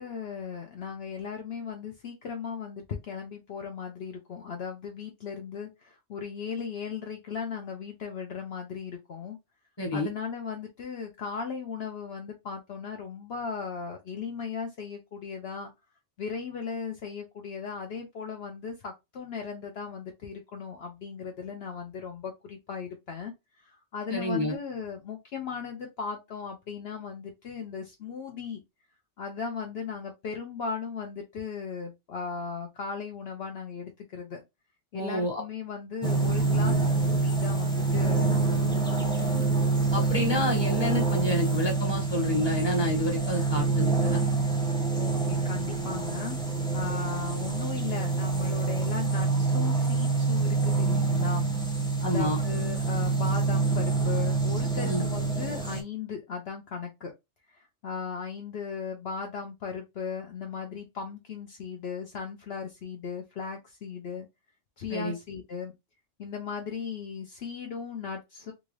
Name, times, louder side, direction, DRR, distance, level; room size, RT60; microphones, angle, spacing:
voice 1, 0.0-9.4 9.9-15.7 16.2-28.6 29.2-34.4 34.9-39.4 44.9-46.4 46.7-51.5 52.0-57.1 57.5-64.3 64.8-65.7 66.2-68.5, left 6 dB, 65° left, 0.9 m, -37 dB
voice 2, 9.8-10.1 24.1-24.5 34.9-35.4 39.9-44.2 52.0-52.4 54.8-55.0 64.9-65.1, left 1 dB, 20° left, 1.3 m, -29 dB
sound 1, 36.0-55.8, right 3 dB, 5° left, 0.7 m, -26 dB
3.6 x 2.5 x 3.1 m
omnidirectional pair, 1.2 m